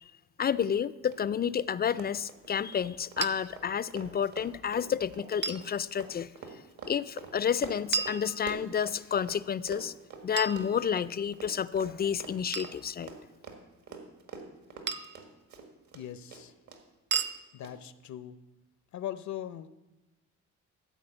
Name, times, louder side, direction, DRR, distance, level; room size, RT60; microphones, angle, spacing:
voice 1, 0.4-6.3 6.9-9.9 10.2-13.1, left 8 dB, 35° left, 18 dB, 0.4 m, -30 dB
Run, 1.1-1.2 1.4-1.6 1.9-9.4 9.7-16.0 16.3-16.8 17.1-17.2 17.6-17.7, right 5 dB, 70° right, 1.9 m, -45 dB
sound 1, 3.2-3.3 5.4-5.7 7.9-8.8 10.4-11.2 12.5-12.8 14.9-15.3 17.1-17.4, right 5 dB, 35° right, 0.7 m, -34 dB
voice 2, 15.9-16.5 17.5-18.4 18.9-19.7, left 11 dB, 65° left, 13 dB, 0.7 m, -40 dB
13.5 x 4.9 x 8.0 m, 1.1 s
cardioid pair, 90°, 30 cm